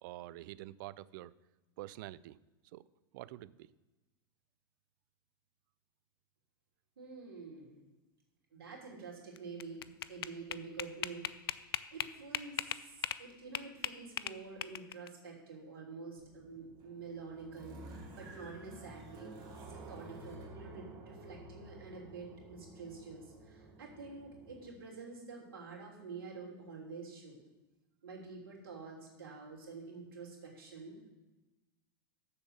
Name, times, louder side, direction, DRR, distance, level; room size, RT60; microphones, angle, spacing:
voice 1, 0.0-1.3 1.8-2.4 2.7-2.8 3.1-3.7, right 16 dB, 60° right, 19 dB, 0.4 m, -47 dB
voice 2, 7.0-7.7 8.5-27.4 28.0-31.1, right 4 dB, 80° right, -2 dB, 3.1 m, -48 dB
sound 1, 9.4-13.2 13.5-15.1, left 10 dB, 85° left, 0.4 m, -38 dB
sound 2, 16.2-24.7, right 2 dB, 35° right, 3.1 m, -52 dB
7.2 x 6.8 x 7.0 m, 1.1 s
hypercardioid pair, 100°, 12 cm